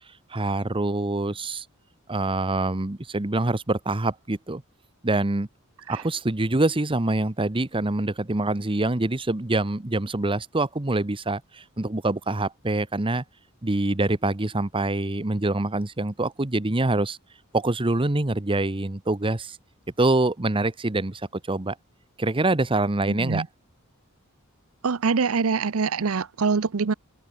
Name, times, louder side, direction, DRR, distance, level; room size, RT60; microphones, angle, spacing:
voice 1, 0.3-1.6 2.1-4.6 5.0-5.5 5.9-13.2 13.6-17.2 17.5-19.6 20.0-21.2 21.5-21.7 22.2-23.4, right 2 dB, 25° right, 1.0 m, -25 dB
voice 2, 23.1-23.5 24.8-26.9, right 5 dB, 80° right, 0.7 m, -24 dB
head